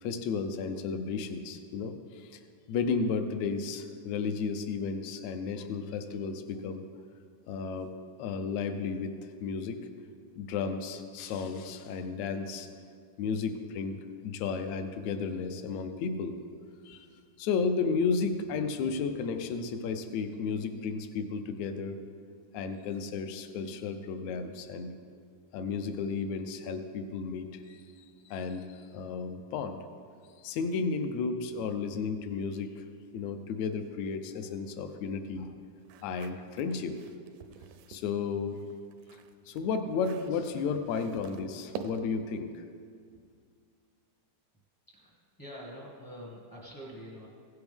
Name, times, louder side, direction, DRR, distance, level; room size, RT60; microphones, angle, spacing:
voice 1, 0.0-2.4 2.7-6.8 7.5-7.9 8.2-9.9 10.4-12.7 13.2-16.4 16.9-17.1 17.4-22.0 22.5-24.9 25.5-27.8 28.3-29.8 30.4-32.8 33.1-35.5 36.0-37.0 37.9-38.6 39.1-39.2 39.5-42.6, left 5 dB, 75° left, 8 dB, 1.7 m, -33 dB
sound 1, 35.8-38.1 38.5-42.3, right 7 dB, 80° right, 2.0 m, -47 dB
voice 2, 44.9-47.3, equal, 20° left, -5 dB, 0.5 m, -46 dB
16.0 x 8.0 x 3.5 m, 2.1 s
omnidirectional pair, 3.7 m